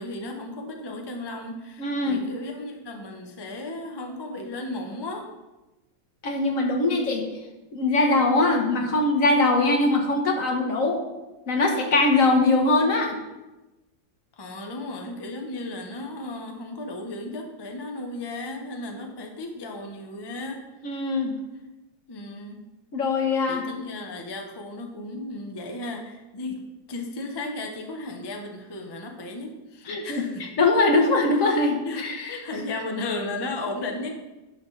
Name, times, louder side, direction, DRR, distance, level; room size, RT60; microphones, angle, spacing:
voice 1, 0.0-5.3 14.4-21.0 22.1-22.6 23.5-30.5 31.8-34.1, left 2 dB, 35° left, 2 dB, 0.4 m, -35 dB
voice 2, 1.8-2.2 6.2-7.3 7.7-11.0 11.5-13.2 20.8-21.3 22.9-23.6 29.9-32.6, left 2 dB, 50° left, 2 dB, 1.3 m, -22 dB
11.0 x 6.2 x 3.2 m, 1.1 s
omnidirectional pair, 2.0 m